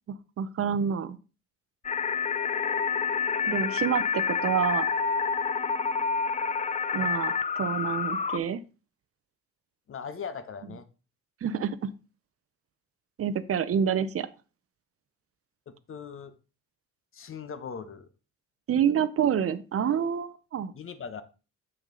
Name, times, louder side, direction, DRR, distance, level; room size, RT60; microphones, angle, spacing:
voice 1, 0.1-1.2 3.5-4.9 6.9-8.6 11.4-11.9 13.2-14.3 18.7-20.7, right 8 dB, 50° right, 14 dB, 0.6 m, -28 dB
sound 1, 1.8-8.4, left 6 dB, 25° left, 0.4 m, -28 dB
voice 2, 9.9-10.9 15.7-16.3 17.1-18.1 20.7-21.2, left 6 dB, 45° left, 12 dB, 0.9 m, -39 dB
7.2 x 6.1 x 3.8 m, 0.33 s
cardioid pair, 90°, 30 cm